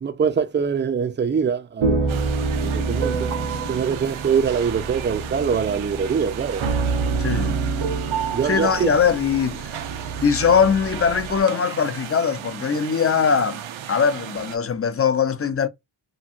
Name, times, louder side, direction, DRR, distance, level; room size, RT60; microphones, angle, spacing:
voice 1, 0.0-2.3 2.6-3.3 3.7-6.6 8.3-8.9, right 6 dB, 25° right, 0.5 m, -23 dB
sound 1, 1.8-11.4, right 4 dB, 85° right, 1.0 m, -27 dB
sound 2, 2.1-14.6, right 10 dB, 70° right, 0.6 m, -36 dB
voice 2, 7.2-7.6 8.4-9.8 10.2-13.6 13.9-15.7, left 6 dB, 30° left, 0.6 m, -21 dB
2.9 x 2.6 x 2.4 m
cardioid pair, 85°, 49 cm